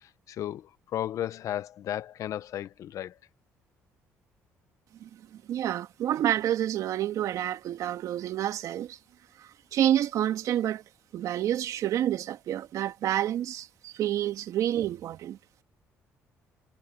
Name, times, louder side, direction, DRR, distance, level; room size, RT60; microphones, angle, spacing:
voice 1, 0.0-3.1, left 11 dB, 65° left, 1.0 m, -34 dB
voice 2, 5.5-9.0 9.7-10.8 11.1-15.4, right 11 dB, 70° right, 2.6 m, -28 dB
supercardioid pair, 75°, 6 cm